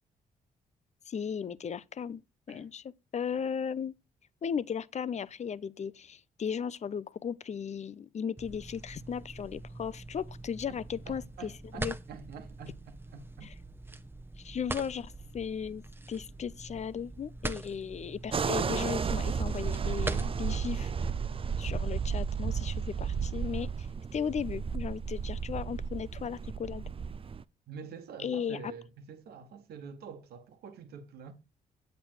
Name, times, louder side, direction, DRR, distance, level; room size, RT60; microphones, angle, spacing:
voice 1, 1.1-2.2 2.5-2.8 3.1-3.9 4.4-11.5 11.8-11.9 14.4-15.8 16.1-20.9 21.6-23.7 24.1-26.8 28.2-28.7, left 7 dB, 45° left, 0.7 m, -36 dB
sound 1, 8.4-20.7, right 2 dB, 15° right, 1.0 m, -43 dB
voice 2, 11.0-13.5 27.7-31.3, right 6 dB, 85° right, 1.5 m, -47 dB
sound 2, 18.3-27.4, right 6 dB, 35° right, 0.5 m, -33 dB
8.2 x 8.2 x 4.6 m
cardioid pair, 70°, 16 cm